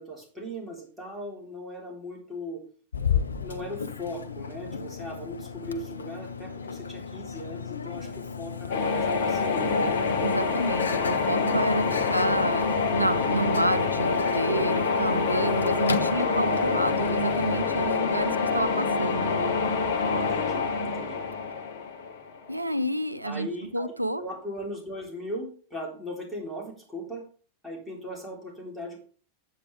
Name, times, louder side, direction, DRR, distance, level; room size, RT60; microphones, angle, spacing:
voice 1, 0.0-2.6 3.1-9.9 20.1-21.2 23.2-23.9 24.2-27.2 27.6-29.0, equal, 5° left, -3 dB, 3.5 m, -38 dB
Microwave oven, 2.9-18.0, left 6 dB, 75° left, 0.6 m, -34 dB
sound 1, 8.7-22.5, left 4 dB, 55° left, 1.4 m, -26 dB
voice 2, 10.2-19.6 22.5-23.5 23.7-24.2, right 1 dB, 85° right, 13 dB, 0.5 m, -29 dB
8.8 x 8.4 x 3.4 m, 0.42 s
figure-of-eight pair, 90°, 0 cm